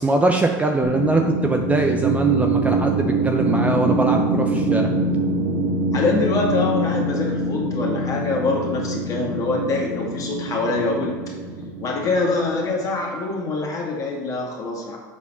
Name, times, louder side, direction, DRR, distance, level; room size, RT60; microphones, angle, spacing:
voice 1, 0.0-4.9, right 2 dB, 15° right, 3 dB, 0.6 m, -22 dB
sound 1, 0.8-13.0, right 2 dB, 45° right, 1.1 m, -24 dB
voice 2, 5.9-11.2 11.8-15.0, left 3 dB, 35° left, -1 dB, 2.1 m, -24 dB
7.3 x 4.2 x 5.6 m, 1.4 s
supercardioid pair, 110°, 11 cm